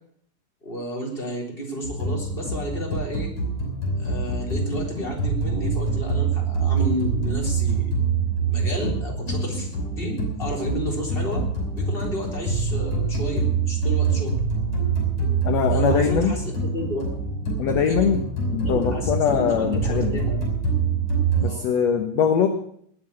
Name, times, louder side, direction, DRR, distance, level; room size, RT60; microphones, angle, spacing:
voice 1, 0.6-3.3 4.0-7.9 8.5-9.7 10.0-11.4 11.8-14.4 15.7-17.3 17.9-18.2 18.6-20.4 21.4-21.7, equal, 15° left, -1 dB, 3.6 m, -32 dB
sound 1, 1.8-21.5, right 4 dB, 35° left, 6.7 m, -25 dB
voice 2, 15.5-16.4 17.6-18.2 18.5-20.2 21.4-22.5, left 7 dB, 60° left, 5 dB, 2.0 m, -22 dB
20.0 x 6.9 x 8.6 m, 0.66 s
omnidirectional pair, 4.2 m